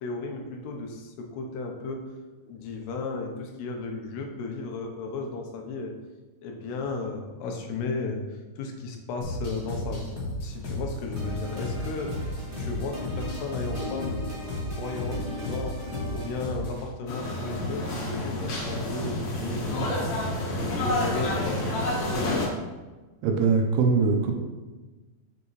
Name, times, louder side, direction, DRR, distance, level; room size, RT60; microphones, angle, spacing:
voice 1, 0.0-2.1 2.4-6.0 6.4-10.1 10.4-12.3 12.6-14.2 14.7-20.1 20.7-21.9, left 3 dB, 85° left, 2 dB, 3.1 m, -34 dB
sound 1, 9.2-16.9, left 1 dB, 35° left, 1.8 m, -34 dB
sound 2, 11.1-16.4, left 2 dB, 25° right, 1.0 m, -38 dB
sound 3, 17.1-22.5, left 1 dB, 55° left, 2.3 m, -29 dB
voice 2, 23.2-24.3, right 5 dB, 80° right, 3 dB, 2.7 m, -22 dB
7.9 x 7.0 x 3.2 m, 1.2 s
omnidirectional pair, 4.7 m